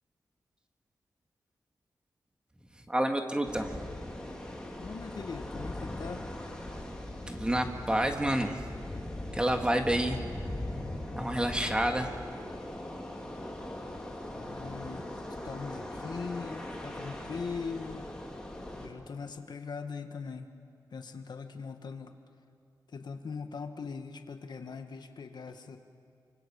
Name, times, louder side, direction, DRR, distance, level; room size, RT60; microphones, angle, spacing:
voice 1, 2.9-3.7 7.3-8.6 9.3-10.2 11.1-12.1, right 1 dB, 10° right, 4 dB, 1.9 m, -28 dB
sound 1, 3.4-18.9, left 1 dB, 10° left, 3.7 m, -40 dB
voice 2, 4.8-6.3 14.3-18.1 18.7-20.5 20.9-22.2 22.9-25.8, left 5 dB, 65° left, 6 dB, 1.8 m, -41 dB
29.0 x 26.5 x 7.2 m, 2.4 s
wide cardioid pair, 125°, 8 cm